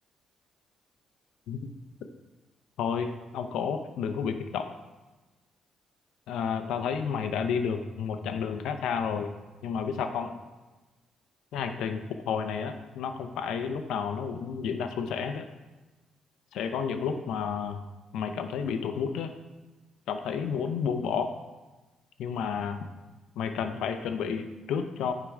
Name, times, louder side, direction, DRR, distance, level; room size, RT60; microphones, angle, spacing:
voice 1, 2.8-4.7 6.3-9.3 9.6-10.3 11.5-15.4 16.5-17.9 18.1-19.3 20.1-21.3 22.2-22.9 23.4-25.1, left 6 dB, 85° left, 7 dB, 0.6 m, -31 dB
9.7 x 3.8 x 4.9 m, 1.2 s
cardioid pair, 90°, 0 cm